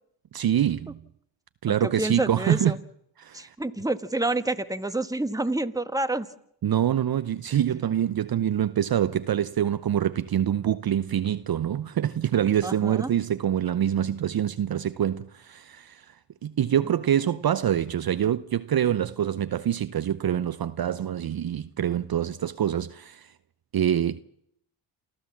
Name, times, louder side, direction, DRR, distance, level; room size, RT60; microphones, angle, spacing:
voice 1, 0.3-1.0 1.6-2.8 3.2-3.5 6.6-16.1 16.4-23.3 23.7-24.2, right 10 dB, 50° right, 0.8 m, -25 dB
voice 2, 1.8-2.7 3.3-6.3 12.6-13.1, right 2 dB, 5° right, 1.5 m, -28 dB
28.0 x 14.5 x 7.3 m
supercardioid pair, 50°, 48 cm